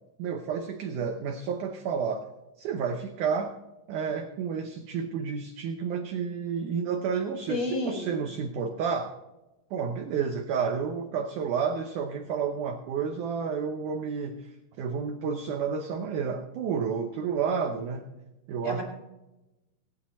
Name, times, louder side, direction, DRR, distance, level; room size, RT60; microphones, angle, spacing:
voice 1, 0.2-2.3 2.6-3.6 3.9-9.1 9.7-18.1 18.5-18.8, right 6 dB, 75° right, 5 dB, 1.9 m, -30 dB
voice 2, 7.5-8.2 18.6-18.8, left 1 dB, 35° right, 1 dB, 1.5 m, -30 dB
20.0 x 9.2 x 4.2 m, 0.99 s
omnidirectional pair, 4.5 m